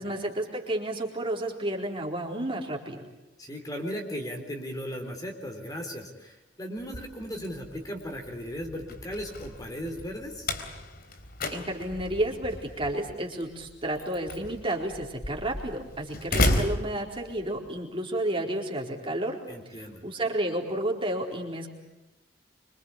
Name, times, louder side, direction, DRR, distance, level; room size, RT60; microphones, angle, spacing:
voice 1, 0.0-3.0 11.5-19.4 19.7-21.7, right 1 dB, 30° right, 1 dB, 4.4 m, -31 dB
voice 2, 3.4-10.5 19.5-20.0, equal, 20° left, 3 dB, 3.8 m, -37 dB
Slam, 6.8-17.7, left 1 dB, 55° left, 3.6 m, -34 dB
26.0 x 25.5 x 8.4 m, 0.97 s
head